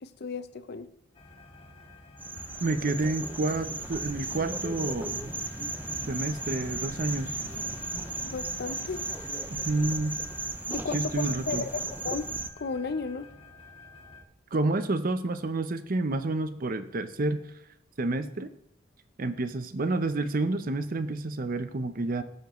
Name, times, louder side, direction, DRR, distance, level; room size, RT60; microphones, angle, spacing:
voice 1, 0.0-0.9 8.2-9.0 10.7-11.8 12.0-12.3 12.6-13.3, left 4 dB, 50° left, 11 dB, 0.6 m, -34 dB
sound 1, 1.1-14.2, left 2 dB, 30° left, 1.5 m, -51 dB
sound 2, 2.2-12.5, right 3 dB, 10° right, 0.3 m, -35 dB
sound 3, 2.3-11.9, left 1 dB, 85° left, 3.0 m, -48 dB
voice 2, 2.6-5.3 6.1-7.4 9.5-10.2 10.9-11.7 14.5-17.4 18.0-18.5 19.2-22.2, right 2 dB, 45° right, 11 dB, 0.6 m, -29 dB
17.0 x 7.0 x 3.1 m, 0.72 s
head